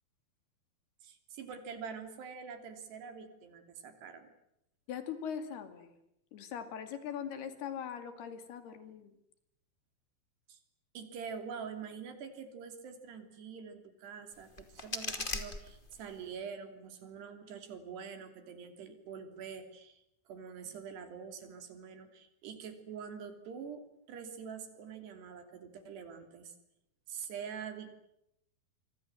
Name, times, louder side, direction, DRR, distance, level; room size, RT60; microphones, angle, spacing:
voice 1, 1.0-4.3 10.5-10.6 10.9-20.0 20.3-26.5 27.1-28.0, right 6 dB, 85° right, 8 dB, 5.1 m, -45 dB
voice 2, 4.9-5.9 6.3-9.1, left 8 dB, 75° left, 10 dB, 4.4 m, -41 dB
sound 1, 14.3-16.3, left 2 dB, 20° left, 1.8 m, -40 dB
27.0 x 25.0 x 7.8 m, 0.80 s
omnidirectional pair, 4.7 m